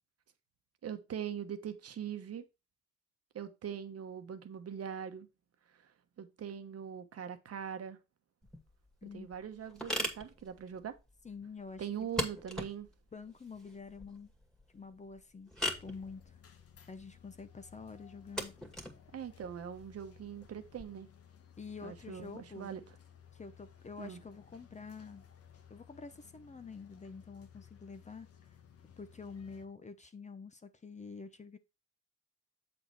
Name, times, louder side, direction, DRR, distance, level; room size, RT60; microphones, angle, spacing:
voice 1, 0.8-2.4 3.3-5.3 6.2-8.0 9.1-11.0 11.8-12.9 19.1-21.1 21.8-22.8 24.0-24.2, right 8 dB, 50° right, 1.1 m, -42 dB
sound 1, 8.4-20.8, left 1 dB, ahead, 2.1 m, -42 dB
voice 2, 11.2-12.1 13.1-14.3 14.7-16.4 16.9-18.5 21.6-22.8 23.3-25.2 25.7-28.3 29.0-31.6, left 5 dB, 25° left, 0.7 m, -47 dB
sound 2, 15.7-29.7, left 9 dB, 50° left, 1.2 m, -59 dB
7.7 x 4.3 x 4.6 m
cardioid pair, 90°, 30 cm